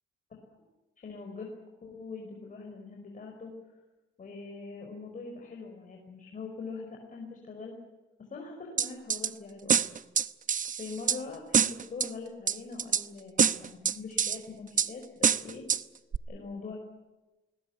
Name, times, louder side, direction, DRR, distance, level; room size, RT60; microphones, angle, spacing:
voice 1, 1.0-1.5 1.8-3.5 4.2-7.7 8.3-9.9 10.8-15.6 16.3-16.8, left 4 dB, 40° left, 1 dB, 5.3 m, -42 dB
sound 1, 8.8-9.3 9.7-11.2 11.5-12.1 12.5-13.0 13.4-14.4 14.8-14.9 15.2-15.8 16.1-16.2, right 7 dB, 40° right, 0.9 m, -25 dB
21.0 x 19.5 x 9.7 m, 1.1 s
cardioid pair, 90°, 20 cm